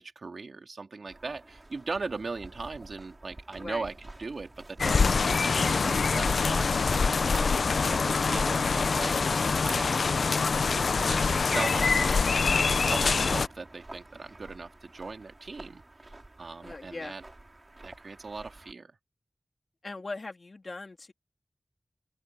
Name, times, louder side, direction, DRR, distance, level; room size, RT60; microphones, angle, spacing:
voice 1, 0.0-9.1 9.6-10.4 11.0-17.2 17.8-18.9, right 3 dB, 70° right, 3.4 m, -39 dB
sound 1, 1.1-18.7, right 2 dB, 35° right, 4.9 m, -48 dB
voice 2, 3.6-3.9 16.6-17.1 19.8-21.1, left 3 dB, 55° left, 3.3 m, -40 dB
sound 2, 4.8-13.5, left 4 dB, 90° left, 0.6 m, -25 dB
wide cardioid pair, 65°, 0 cm